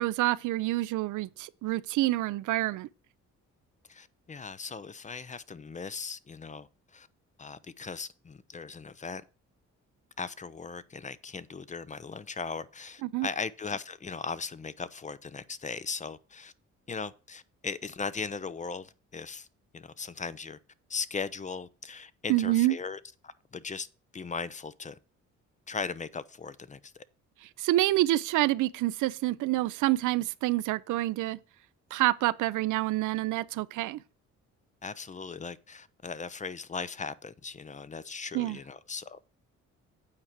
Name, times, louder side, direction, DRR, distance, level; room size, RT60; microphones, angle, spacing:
voice 1, 0.0-2.9 13.0-13.3 22.3-22.8 27.6-31.4 31.9-34.0 38.3-38.6, right 16 dB, 80° right, 0.5 m, -27 dB
voice 2, 3.9-7.1 7.4-9.2 10.2-16.5 16.9-19.5 19.7-20.6 20.9-23.9 24.1-25.0 25.7-27.0 34.8-39.2, left 5 dB, 25° left, 0.5 m, -38 dB
8.7 x 4.5 x 6.5 m
cardioid pair, 90°, 30 cm